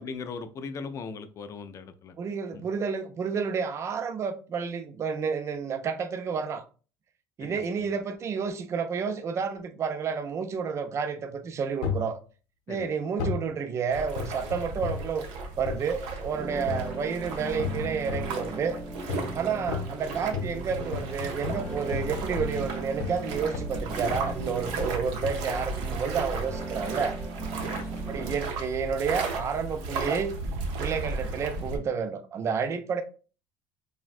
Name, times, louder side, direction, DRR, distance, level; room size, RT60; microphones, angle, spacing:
voice 1, 0.0-2.1 2.5-2.7 7.4-7.9 12.7-12.9 19.2-19.4 27.6-28.3, left 5 dB, 40° left, 0.3 m, -40 dB
voice 2, 2.2-6.6 7.4-12.2 12.7-15.3 15.6-18.8 19.3-27.2 28.1-30.4 30.8-33.0, right 6 dB, 35° right, 0.4 m, -30 dB
sound 1, 11.8-12.1 13.2-13.5 14.2-15.1 15.7-15.9 16.7-17.0 17.6-18.4 19.1-19.4 19.7-23.3 23.5-23.8 24.1-24.5 25.2-25.5 26.3-26.6 27.2-27.3, left 5 dB, 80° left, 0.7 m, -34 dB
sound 2, 13.9-31.8, right 3 dB, 80° right, 0.7 m, -35 dB
sound 3, 16.3-28.3, right 3 dB, 5° right, 0.8 m, -39 dB
3.3 x 2.1 x 2.4 m
supercardioid pair, 110°, 8 cm